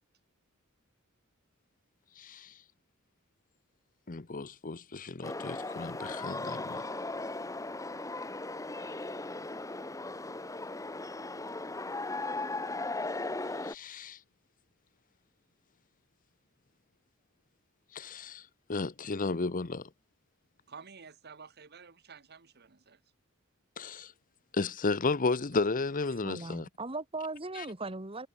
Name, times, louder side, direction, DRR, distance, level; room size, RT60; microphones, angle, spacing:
voice 1, 2.2-2.5 4.1-6.8 13.6-14.2 17.9-18.4 18.7-19.9 23.8-24.1 24.5-26.7 27.6-27.7, left 3 dB, 40° left, 0.8 m, -33 dB
sound 1, 5.2-13.7, left 2 dB, 15° left, 1.2 m, -37 dB
voice 2, 20.7-23.0, right 5 dB, 50° right, 1.6 m, -51 dB
voice 3, 26.2-28.3, right 3 dB, 25° right, 2.2 m, -38 dB
head